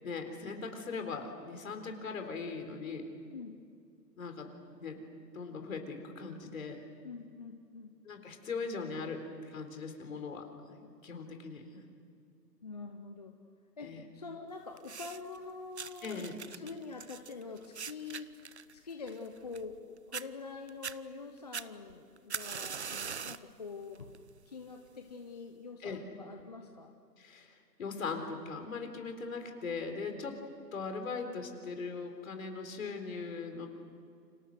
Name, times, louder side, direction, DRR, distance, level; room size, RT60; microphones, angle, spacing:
voice 1, 0.0-3.1 4.2-4.5 4.8-5.0 5.3-6.9 8.0-11.8 13.8-14.0 16.0-16.4 25.8-26.0 27.2-30.4 30.7-33.7, left 4 dB, 50° left, 5 dB, 4.1 m, -40 dB
voice 2, 7.0-7.9 12.6-13.3 13.8-18.3 18.7-24.1 24.5-26.9, left 4 dB, 25° left, 4 dB, 0.8 m, -45 dB
sound 1, 14.8-15.4 15.8-19.8 20.1-20.3 20.7-21.0 21.5-23.5 23.9-24.3 25.1-25.2, right 6 dB, 45° right, 0.6 m, -42 dB
29.5 x 26.0 x 6.5 m, 2.3 s
hypercardioid pair, 160°, 50 cm